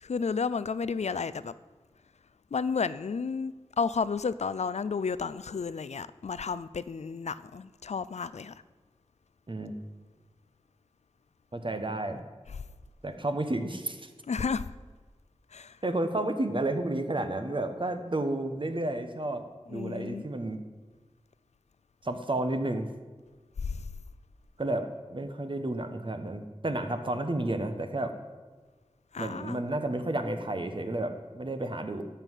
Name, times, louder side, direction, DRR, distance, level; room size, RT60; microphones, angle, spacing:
voice 1, 0.0-1.5 2.5-8.5 14.3-14.7 15.5-15.8 19.7-20.2 23.6-23.8 29.1-29.6, left 5 dB, 85° left, 0.4 m, -32 dB
voice 2, 11.5-12.2 13.0-14.1 15.8-19.4 19.7-20.6 22.0-22.9 24.6-28.1 29.2-32.0, right 2 dB, 50° right, 1.2 m, -31 dB
12.0 x 5.8 x 8.1 m
wide cardioid pair, 50°, 11 cm